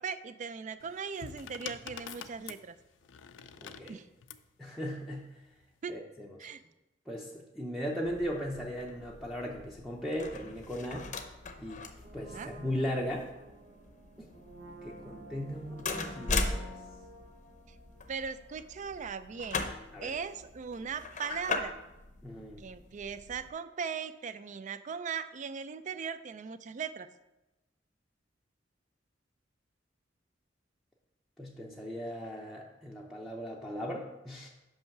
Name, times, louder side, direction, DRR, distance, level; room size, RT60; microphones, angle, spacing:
voice 1, 0.0-2.8 3.9-4.1 5.8-6.0 6.4-6.6 12.3-12.5 18.1-19.6 20.0-21.7 22.6-27.1, right 6 dB, 40° right, 13 dB, 0.4 m, -39 dB
sound 1, 0.8-4.5 5.5-5.9, left 8 dB, 80° left, 0.4 m, -46 dB
voice 2, 3.6-4.0 4.6-5.3 5.9-6.3 7.1-11.1 11.6-11.8 12.1-13.3 14.2-14.3 14.8-16.7 19.9-20.1 22.2-22.6 31.4-34.5, equal, ahead, -2 dB, 0.6 m, -37 dB
sound 2, 8.0-23.5, left 3 dB, 40° left, 0.7 m, -40 dB
Brass instrument, 12.0-18.8 19.1-19.2, right 1 dB, 75° right, 0.9 m, -51 dB
5.6 x 5.5 x 5.8 m, 1.0 s
head